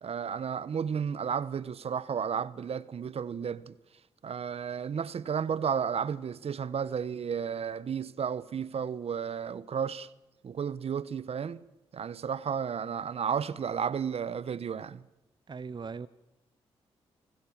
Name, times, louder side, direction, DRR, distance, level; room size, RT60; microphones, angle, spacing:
voice 1, 0.0-3.7 4.2-10.1 10.4-11.6 11.9-15.0, right 7 dB, 60° right, 1.1 m, -33 dB
voice 2, 15.5-16.1, right 5 dB, 40° right, 0.8 m, -39 dB
29.0 x 19.0 x 7.3 m
supercardioid pair, 45°, 12 cm